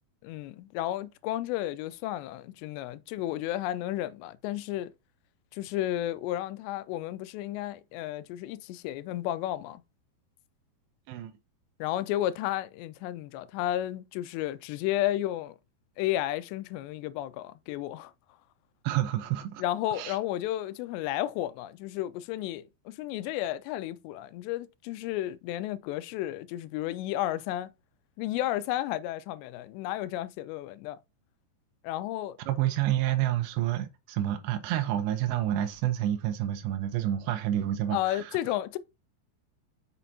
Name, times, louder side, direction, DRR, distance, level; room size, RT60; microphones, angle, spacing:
voice 1, 0.2-4.9 5.5-9.8 11.8-15.6 16.0-18.1 19.6-27.7 28.2-31.0 31.8-32.4 37.9-38.8, left 14 dB, 85° left, 2.8 m, -32 dB
voice 2, 18.8-19.6 19.9-20.2 32.5-38.3, right 12 dB, 85° right, 2.8 m, -29 dB
6.1 x 5.7 x 2.7 m
omnidirectional pair, 4.9 m